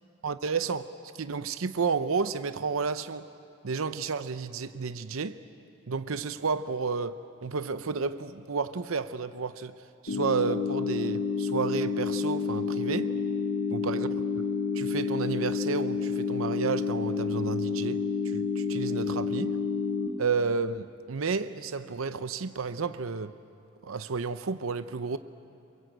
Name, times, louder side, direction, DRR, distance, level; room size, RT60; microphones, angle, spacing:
voice 1, 0.2-3.3 3.6-5.4 5.9-9.7 10.0-13.1 13.7-14.1 14.7-18.0 18.2-19.6 20.2-23.3 23.8-25.2, right 5 dB, 85° right, 0.7 m, -31 dB
sound 1, 10.1-20.1, left 5 dB, 75° left, 1.6 m, -29 dB
27.0 x 22.5 x 8.0 m
head